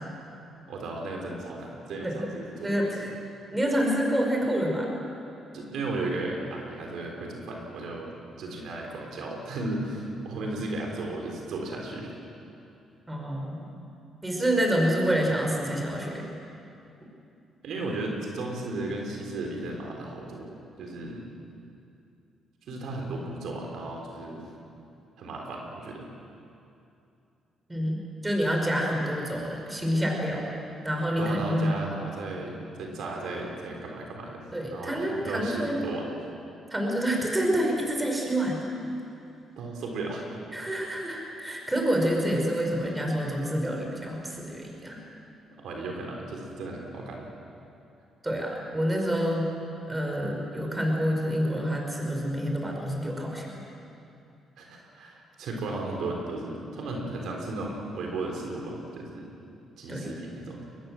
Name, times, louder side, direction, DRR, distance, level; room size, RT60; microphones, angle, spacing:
voice 1, 0.7-3.1 5.5-12.1 17.6-21.2 22.7-24.5 25.2-26.1 31.2-36.1 39.6-40.4 45.6-47.3 54.6-59.3 59.8-60.7, right 2 dB, 75° right, 1 dB, 3.8 m, -35 dB
voice 2, 2.6-3.1 3.5-4.9 13.1-13.7 14.2-16.3 27.7-30.5 30.8-31.7 34.5-35.8 36.7-38.6 40.5-45.0 48.2-49.5 49.9-53.6 59.9-60.1, equal, 15° right, 0 dB, 5.6 m, -27 dB
23.0 x 20.0 x 7.7 m, 2.7 s
cardioid pair, 90°, 0 cm